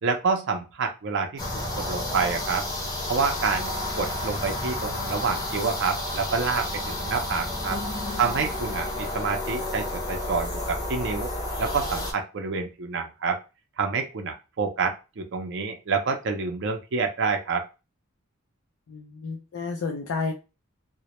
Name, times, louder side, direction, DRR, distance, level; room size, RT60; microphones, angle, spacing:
voice 1, 0.0-2.6 3.1-7.8 8.2-11.3 11.6-13.4 13.8-17.6, right 5 dB, 55° right, 4 dB, 0.5 m, -28 dB
sound 1, 1.4-12.1, left 1 dB, 20° left, 0.6 m, -31 dB
voice 2, 7.7-8.4 18.9-20.3, left 4 dB, 70° left, 2 dB, 0.4 m, -32 dB
2.1 x 2.0 x 2.8 m, 0.29 s
head